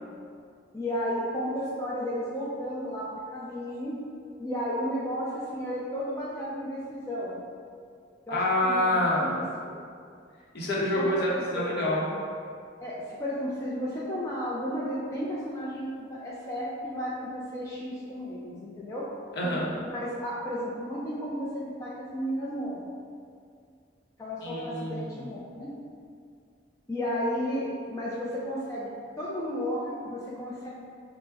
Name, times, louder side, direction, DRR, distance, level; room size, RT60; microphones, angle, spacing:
voice 1, 0.7-4.0 4.4-7.4 8.3-9.7 11.0-11.6 12.8-19.1 19.8-22.8 24.2-25.7 26.9-28.9 29.2-30.7, equal, 15° left, -7 dB, 0.3 m, -33 dB
voice 2, 8.3-9.4 10.5-12.1 19.4-19.7 24.4-25.3, left 1 dB, 55° left, -5 dB, 0.7 m, -27 dB
4.6 x 2.0 x 3.4 m, 2.3 s
head